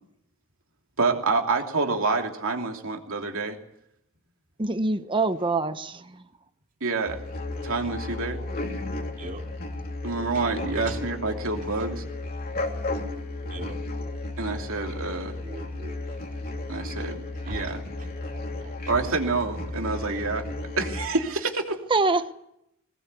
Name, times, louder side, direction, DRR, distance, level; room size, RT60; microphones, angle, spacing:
voice 1, 1.0-3.6 6.8-7.2 7.6-8.4 10.0-12.0 14.4-15.4 16.7-17.8 18.9-20.5 20.8-21.8, right 3 dB, 65° right, 3 dB, 3.0 m, -27 dB
voice 2, 4.6-6.2 21.9-22.3, right 3 dB, 20° right, 11 dB, 1.0 m, -25 dB
sound 1, 7.1-21.1, left 2 dB, 45° left, 2.9 m, -34 dB
voice 3, 10.6-11.0 13.0-13.7 15.4-16.0 17.4-17.6 18.6-18.7, right 1 dB, 40° right, 3 dB, 2.9 m, -39 dB
21.0 x 19.0 x 8.3 m, 0.79 s
head